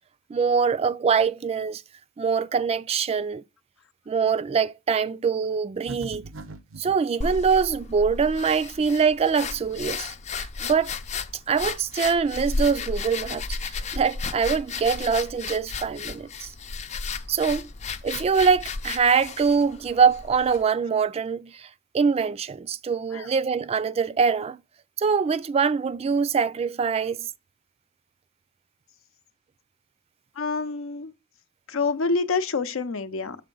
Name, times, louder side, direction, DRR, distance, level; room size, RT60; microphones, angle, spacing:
voice 1, 0.3-1.8 2.2-3.4 4.1-6.2 6.8-10.1 10.4-10.9 11.5-16.5 17.3-17.7 18.0-21.7 21.9-24.6 25.0-27.3, right 6 dB, 30° right, 0.3 m, -24 dB
sound 1, 5.9-7.0, right 2 dB, 75° right, 0.6 m, -40 dB
sound 2, 7.2-20.6, left 4 dB, 35° left, 0.5 m, -34 dB
voice 2, 30.4-31.1 31.7-33.4, left 4 dB, 80° left, 0.7 m, -27 dB
6.6 x 4.4 x 3.8 m
head